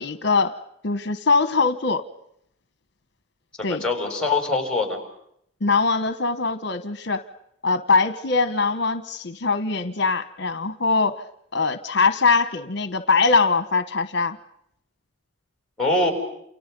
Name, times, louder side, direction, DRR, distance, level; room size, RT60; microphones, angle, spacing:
voice 1, 0.0-2.0 3.6-3.8 5.6-7.2 7.6-11.3 11.5-14.4, left 4 dB, 55° left, 11 dB, 1.1 m, -22 dB
voice 2, 3.6-5.0 15.8-16.1, left 2 dB, 5° left, 4 dB, 6.4 m, -23 dB
29.0 x 29.0 x 5.3 m, 0.74 s
head